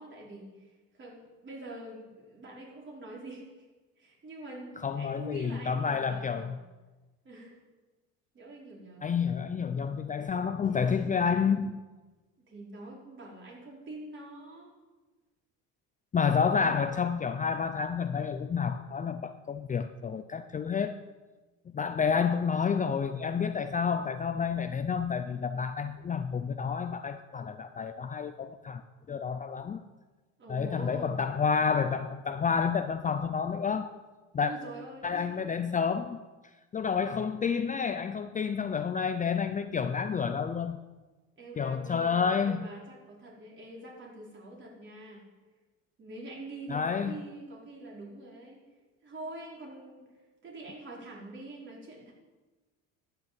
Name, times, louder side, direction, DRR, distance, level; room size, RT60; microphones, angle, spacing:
voice 1, 0.0-3.6 4.0-6.5 7.2-7.6 8.3-9.2 12.5-14.7 16.5-17.0 30.4-31.1 34.4-35.3 41.4-45.2 46.0-48.6 49.0-50.1 50.4-52.1, right 2 dB, 35° right, -3 dB, 4.8 m, -45 dB
voice 2, 4.8-6.6 9.0-11.8 16.1-21.0 21.7-28.8 29.1-29.8 30.5-33.9 34.3-34.5 35.0-36.2 36.7-40.8 41.6-42.7 46.7-47.2, left 6 dB, 25° left, 10 dB, 0.6 m, -29 dB
12.0 x 6.8 x 8.9 m, 1.2 s
supercardioid pair, 100°, 33 cm